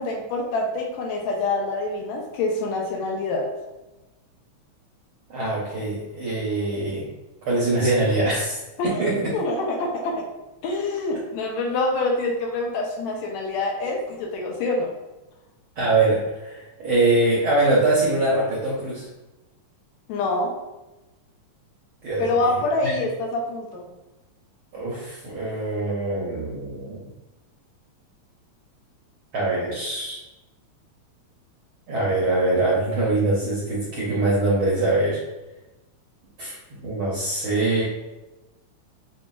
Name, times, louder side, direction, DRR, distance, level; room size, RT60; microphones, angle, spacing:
voice 1, 0.0-3.5 8.8-9.1 9.3-10.2 10.6-14.9 20.1-20.5 22.2-23.9, left 2 dB, 80° left, 0 dB, 1.9 m, -26 dB
voice 2, 5.3-7.1 7.4-8.6 8.8-9.3 15.8-19.1 22.0-22.9 24.7-27.1 29.3-30.2 31.9-35.2 36.4-36.6 36.8-37.8, right 2 dB, 70° right, -6 dB, 1.3 m, -23 dB
6.7 x 2.3 x 2.3 m, 1.0 s
omnidirectional pair, 3.4 m